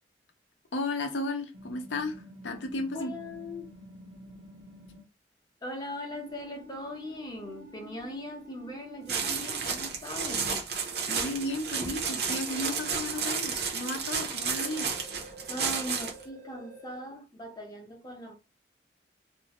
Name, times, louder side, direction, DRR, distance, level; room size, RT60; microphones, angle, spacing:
voice 1, 0.7-3.1 11.0-14.9, left 2 dB, 90° left, 0.6 m, -34 dB
sound 1, 1.5-5.0 6.1-9.6 10.8-13.9 14.6-17.0, right 1 dB, 85° right, 0.9 m, -49 dB
voice 2, 2.9-3.7 5.6-10.5 15.5-18.4, left 1 dB, 20° left, 0.6 m, -40 dB
sound 2, 9.1-16.2, right 5 dB, 60° right, 0.6 m, -32 dB
2.5 x 2.0 x 2.9 m
head